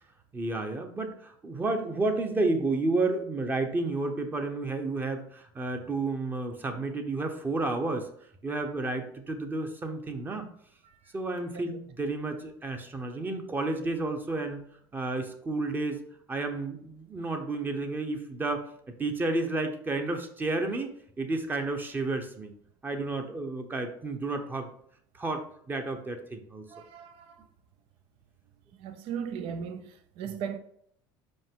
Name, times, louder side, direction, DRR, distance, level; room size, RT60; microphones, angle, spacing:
voice 1, 0.3-8.1 8.4-10.5 11.1-14.6 14.9-16.0 16.3-22.5 22.8-24.7 25.1-26.7, right 2 dB, 20° right, 0.8 m, -31 dB
voice 2, 26.7-27.4 28.8-30.6, right 7 dB, 65° right, 0.6 m, -37 dB
5.3 x 5.0 x 3.7 m
cardioid pair, 125°, 10 cm